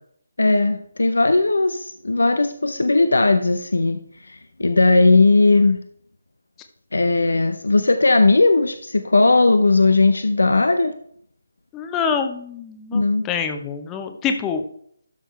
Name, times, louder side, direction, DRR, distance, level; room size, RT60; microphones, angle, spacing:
voice 1, 0.4-5.8 6.9-10.9 12.9-13.3, left 3 dB, 75° left, 9 dB, 0.7 m, -17 dB
voice 2, 11.7-14.6, left 6 dB, 15° left, 6 dB, 0.9 m, -26 dB
12.5 x 6.4 x 3.2 m, 0.63 s
figure-of-eight pair, 150°, 0 cm